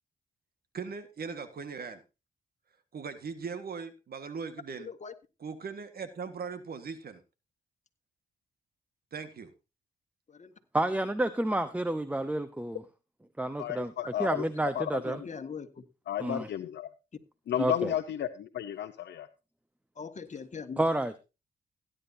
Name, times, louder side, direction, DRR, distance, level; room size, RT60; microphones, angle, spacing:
voice 1, 0.7-2.0 2.9-4.9 5.4-7.2 9.1-9.5, right 5 dB, 60° right, 1.7 m, -39 dB
voice 2, 4.8-5.1 10.3-10.5 15.0-15.8 20.0-20.8, left 6 dB, 40° left, 1.6 m, -41 dB
voice 3, 10.7-12.8 13.4-13.9 14.2-15.2 16.2-16.5 17.6-17.9 20.8-21.2, right 1 dB, 10° right, 0.9 m, -29 dB
voice 4, 13.6-14.5 14.7-15.0 16.1-16.9 17.5-19.3, left 10 dB, 75° left, 0.8 m, -33 dB
16.5 x 10.0 x 2.8 m
cardioid pair, 70°, 18 cm